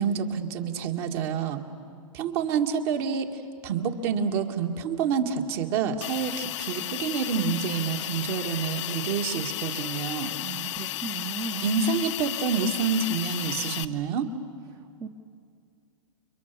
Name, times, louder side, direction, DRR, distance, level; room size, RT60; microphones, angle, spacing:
voice 1, 0.0-1.6 2.1-10.3 11.6-14.3, right 6 dB, 45° right, 4 dB, 2.2 m, -28 dB
Hiss, 6.0-13.8, left 14 dB, 55° left, 0.8 m, -33 dB
voice 2, 10.4-11.7 14.7-15.1, right 7 dB, 20° right, 6 dB, 1.0 m, -37 dB
30.0 x 23.5 x 7.1 m, 2.3 s
hypercardioid pair, 120°, 18 cm